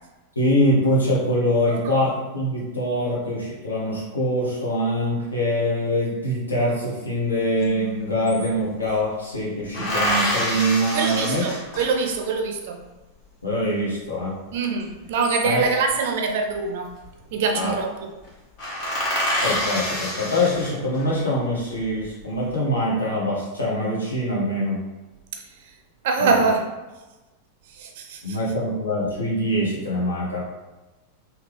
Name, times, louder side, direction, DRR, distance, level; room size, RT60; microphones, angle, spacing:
voice 1, 0.3-11.4 13.4-14.3 15.4-15.6 17.5-17.8 19.4-24.8 26.2-26.3 28.2-30.4, equal, 80° left, -5 dB, 1.0 m, -24 dB
sound 1, 7.6-7.7 7.9-9.0 9.7-12.3 14.9-15.9 17.1-17.5 17.8-17.9 18.2-18.3 18.6-21.1 21.7-22.4, equal, 40° left, 0.9 m, -27 dB
voice 2, 10.9-12.8 14.5-16.9 17.3-18.1 25.3-25.4 26.0-26.6 27.7-28.4, right 4 dB, 55° right, 3 dB, 0.5 m, -24 dB
3.3 x 2.3 x 3.3 m, 1.1 s
figure-of-eight pair, 90°, 0 cm